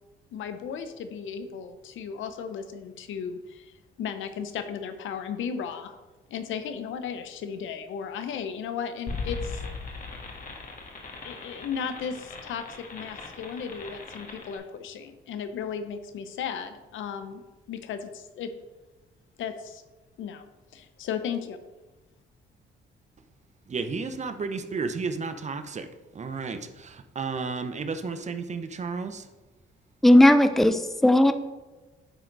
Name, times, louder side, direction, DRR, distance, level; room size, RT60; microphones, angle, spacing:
voice 1, 0.3-3.7 4.0-5.9 6.3-9.6 11.2-17.4 17.7-18.5 19.4-19.8 20.2-20.4 20.7-21.6, left 7 dB, 75° left, 9 dB, 0.8 m, -35 dB
sound 1, 9.1-14.6, left 4 dB, 45° left, 1.7 m, -38 dB
voice 2, 23.7-25.9 26.1-29.3, right 4 dB, 35° right, 8 dB, 0.7 m, -32 dB
voice 3, 30.0-31.3, left 1 dB, ahead, 10 dB, 0.5 m, -17 dB
9.0 x 3.8 x 4.6 m, 1.2 s
cardioid pair, 90°, 20 cm